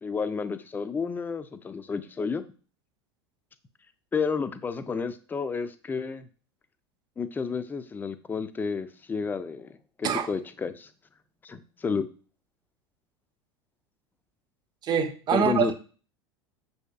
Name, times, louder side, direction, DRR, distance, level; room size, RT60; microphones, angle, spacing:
voice 1, 0.0-2.4 4.1-6.3 7.2-10.9 11.4-12.1 15.3-15.7, left 5 dB, 15° left, 0.4 m, -31 dB
voice 2, 14.8-15.7, right 8 dB, 30° right, 0.6 m, -25 dB
6.1 x 2.8 x 2.3 m
figure-of-eight pair, 80°, 14 cm